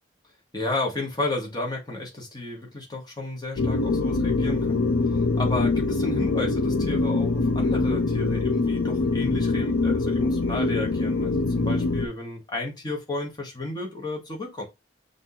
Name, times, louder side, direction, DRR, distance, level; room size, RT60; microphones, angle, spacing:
voice 1, 0.5-4.9 5.4-14.6, left 2 dB, 20° left, 1.2 m, -32 dB
sound 1, 3.6-12.1, left 3 dB, 85° left, 0.6 m, -24 dB
5.9 x 2.6 x 2.9 m
head